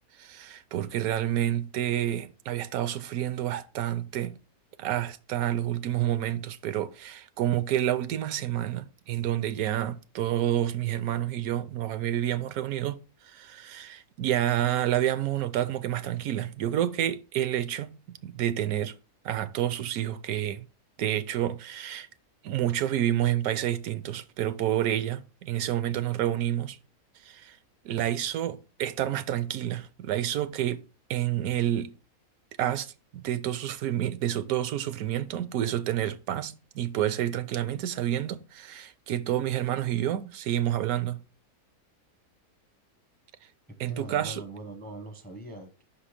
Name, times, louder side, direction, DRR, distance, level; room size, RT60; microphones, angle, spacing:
voice 1, 0.2-4.4 4.8-18.9 19.2-20.7 21.0-22.1 22.4-26.8 27.2-27.6 27.8-30.8 31.1-31.9 32.6-41.2 43.8-44.4, right 12 dB, 75° right, 1.0 m, -29 dB
voice 2, 43.7-45.8, right 1 dB, 10° left, 0.4 m, -42 dB
5.7 x 4.1 x 4.9 m
omnidirectional pair, 1.6 m